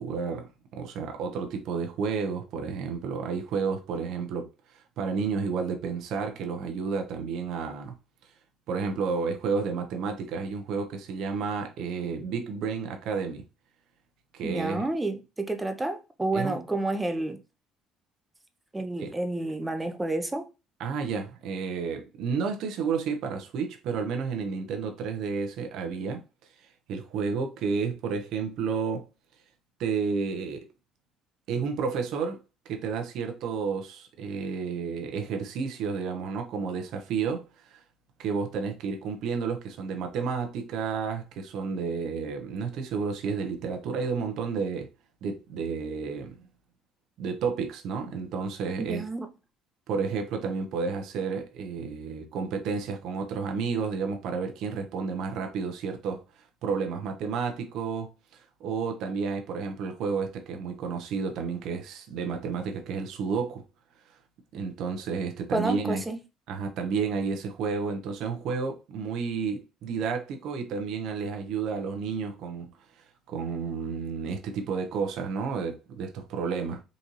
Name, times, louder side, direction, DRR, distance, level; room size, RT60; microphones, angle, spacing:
voice 1, 0.0-7.9 8.7-13.4 14.3-14.8 16.3-16.6 19.0-19.1 20.8-26.2 26.9-29.0 29.8-30.7 31.5-32.4 32.7-37.8 38.2-44.9 45.2-46.4 47.2-49.0 49.9-56.2 56.6-63.6 64.5-66.0 66.5-72.7 73.3-76.8, right 5 dB, 70° right, 0.7 m, -31 dB
voice 2, 14.4-17.4 18.7-20.5 48.8-49.3 65.5-66.2, right 2 dB, 15° right, 0.6 m, -30 dB
3.9 x 2.6 x 2.9 m
supercardioid pair, 75°, 0 cm